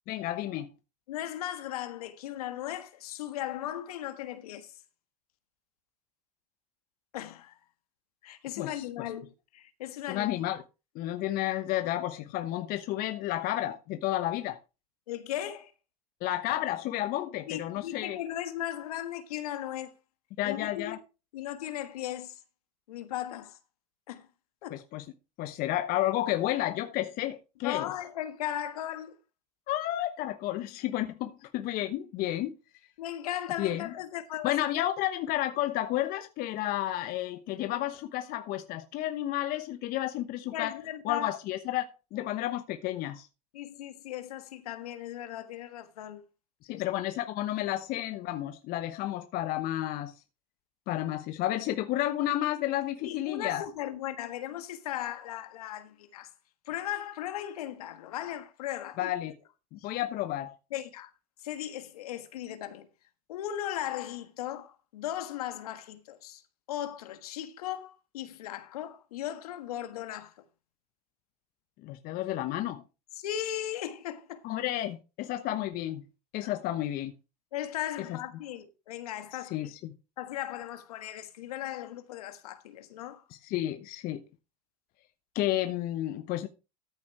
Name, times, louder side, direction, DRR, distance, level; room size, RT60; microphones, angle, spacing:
voice 1, 0.1-0.7 8.6-8.8 10.1-10.6 10.9-14.6 16.2-18.2 20.4-21.0 24.7-25.0 25.4-27.9 29.7-32.6 33.6-33.8 34.4-43.3 46.7-50.1 50.9-53.6 59.0-59.3 59.7-60.6 71.8-72.8 74.4-76.0 76.3-77.1 78.1-78.2 79.5-79.9 83.4-84.2 85.3-86.5, left 14 dB, 50° left, 1.0 m, -31 dB
voice 2, 1.1-4.7 7.1-7.6 8.2-10.4 15.1-15.7 17.2-19.9 20.4-21.0 21.3-22.4 22.9-23.6 24.1-24.3 24.6-24.8 27.6-29.1 33.0-34.7 40.5-41.3 42.2-42.3 43.5-46.2 46.6-46.8 53.0-56.3 56.7-59.1 59.8-59.9 60.7-61.1 61.4-62.9 63.3-66.4 66.7-70.4 73.1-74.4 76.4-76.5 77.5-79.7 80.2-83.2, left 12 dB, 75° left, 1.5 m, -37 dB
14.0 x 8.5 x 3.2 m
hypercardioid pair, 80°, 20 cm